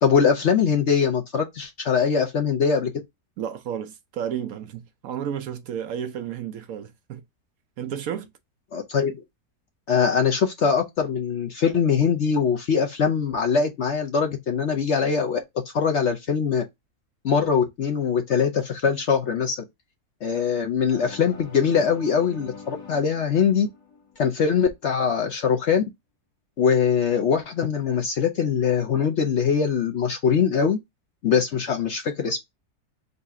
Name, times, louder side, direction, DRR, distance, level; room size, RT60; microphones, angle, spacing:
voice 1, 0.0-2.9 8.7-9.2 9.9-15.4 15.7-16.6 17.2-19.6 20.2-23.7 24.2-25.8 26.6-30.8 31.2-32.4, left 6 dB, 60° left, 0.8 m, -22 dB
voice 2, 3.4-7.2 7.8-8.3, right 9 dB, 70° right, 0.9 m, -32 dB
sound 1, 20.9-24.7, left 5 dB, 85° left, 1.9 m, -44 dB
4.1 x 2.7 x 3.6 m
omnidirectional pair, 1.7 m